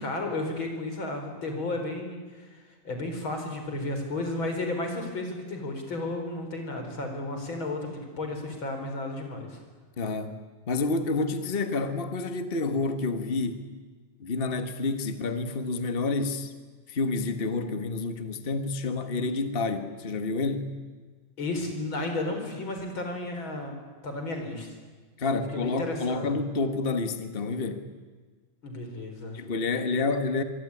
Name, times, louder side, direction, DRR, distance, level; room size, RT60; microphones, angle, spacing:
voice 1, 0.0-2.6 2.8-9.6 21.4-23.7 24.0-24.7 25.5-26.4 28.6-29.4, left 2 dB, 35° left, 4 dB, 5.2 m, -33 dB
voice 2, 10.0-10.4 10.7-13.6 14.2-16.5 16.9-20.7 25.2-27.8 29.3-30.4, left 3 dB, 70° left, 8 dB, 0.5 m, -29 dB
25.5 x 24.0 x 9.9 m, 1.4 s
omnidirectional pair, 3.8 m